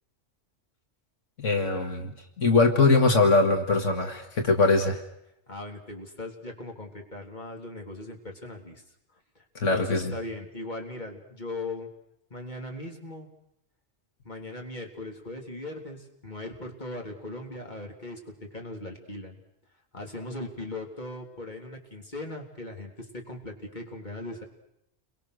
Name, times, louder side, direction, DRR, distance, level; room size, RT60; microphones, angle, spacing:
voice 1, 1.4-5.0 9.6-10.1, left 3 dB, 85° left, 5 dB, 2.3 m, -22 dB
voice 2, 5.5-8.8 9.4-11.9 12.3-13.3 14.3-19.4 19.9-24.4, left 2 dB, 40° left, 2 dB, 3.5 m, -39 dB
29.5 x 23.0 x 6.6 m, 0.80 s
omnidirectional pair, 1.2 m